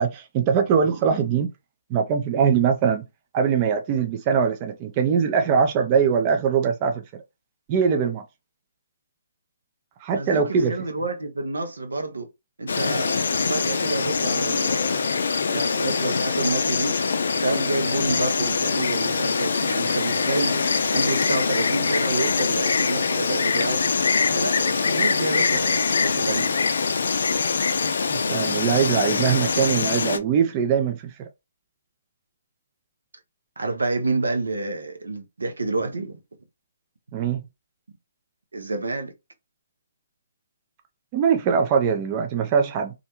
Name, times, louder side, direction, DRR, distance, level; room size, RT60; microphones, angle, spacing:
voice 1, 0.0-1.5 1.9-3.0 3.3-7.0 7.7-8.2 10.0-10.8 28.1-31.3 37.1-37.4 41.1-42.9, right 6 dB, 30° right, 0.4 m, -22 dB
voice 2, 10.1-12.3 12.6-17.0 17.4-23.8 24.3-26.6 33.6-36.2 38.5-39.1, right 2 dB, 85° right, 0.7 m, -29 dB
Insect, 12.7-30.2, left 5 dB, 70° left, 0.4 m, -23 dB
2.4 x 2.1 x 2.9 m
hypercardioid pair, 145°, 0 cm